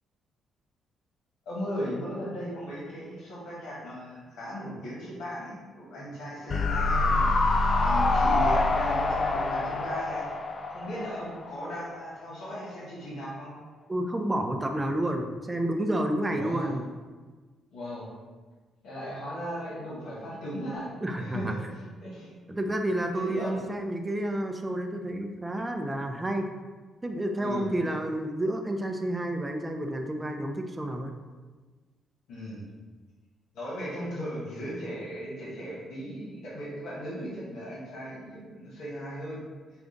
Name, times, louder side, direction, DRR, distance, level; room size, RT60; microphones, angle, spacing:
voice 1, 1.4-10.2 10.7-13.5 16.3-16.7 17.7-18.1 18.8-21.6 22.0-22.4 23.1-23.6 27.4-27.7 32.3-32.7 33.5-39.4, equal, 85° left, -8 dB, 1.4 m, -37 dB
sound 1, 6.5-11.7 12.0-12.1, left 3 dB, 40° left, 0.3 m, -25 dB
voice 2, 13.9-16.8 21.0-21.5 22.5-26.5 27.0-31.1, right 1 dB, 15° right, 4 dB, 0.5 m, -30 dB
5.0 x 2.3 x 3.8 m, 1.4 s
cardioid pair, 90°, 0 cm